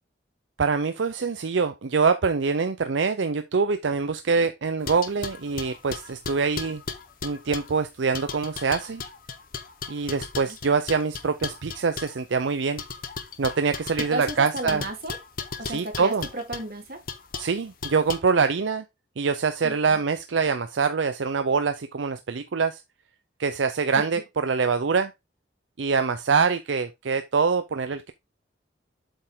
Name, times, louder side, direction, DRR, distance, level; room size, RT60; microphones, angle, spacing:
voice 1, 0.6-6.8 7.2-9.0 9.9-12.8 13.4-14.8 15.7-16.3 17.4-18.8 19.2-22.8 23.4-25.1 25.8-28.1, right 5 dB, 80° right, 0.5 m, -24 dB
sound 1, 4.9-7.8 8.1-12.2 12.8-16.6 17.1-17.5 17.8-18.2, left 5 dB, 45° left, 0.8 m, -36 dB
voice 2, 14.1-15.2 15.6-17.0 19.6-20.0 23.9-24.0, right 1 dB, 50° right, 2.3 m, -33 dB
7.9 x 4.5 x 3.6 m
head